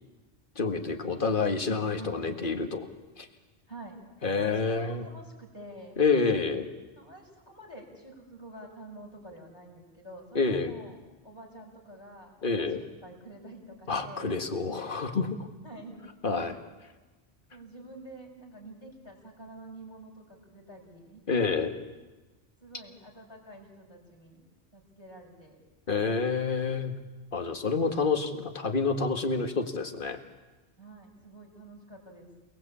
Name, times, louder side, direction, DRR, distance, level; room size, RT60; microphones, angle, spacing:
voice 1, 0.6-2.9 3.2-3.3 4.2-5.0 6.0-6.7 10.4-10.8 12.4-12.8 13.9-15.4 16.2-16.6 21.3-21.7 25.9-26.9 27.3-30.2, left 4 dB, 50° left, 6 dB, 2.0 m, -28 dB
voice 2, 4.3-6.0 6.9-11.0 11.2-14.4 15.6-16.0 17.5-21.6 22.6-24.4 24.7-25.6 30.8-32.3, right 1 dB, 25° left, -2 dB, 5.7 m, -48 dB
29.0 x 19.0 x 8.5 m, 1.2 s
omnidirectional pair, 1.1 m